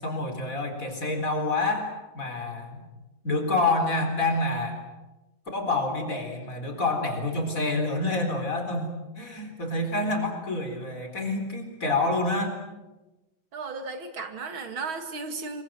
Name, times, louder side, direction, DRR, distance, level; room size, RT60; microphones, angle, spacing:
voice 1, 0.0-2.8 3.2-4.8 5.5-8.9 9.2-12.6, left 2 dB, 40° left, 5 dB, 4.7 m, -27 dB
voice 2, 13.5-15.6, right 4 dB, 75° right, 7 dB, 3.0 m, -35 dB
26.5 x 23.5 x 7.6 m, 1.1 s
omnidirectional pair, 2.2 m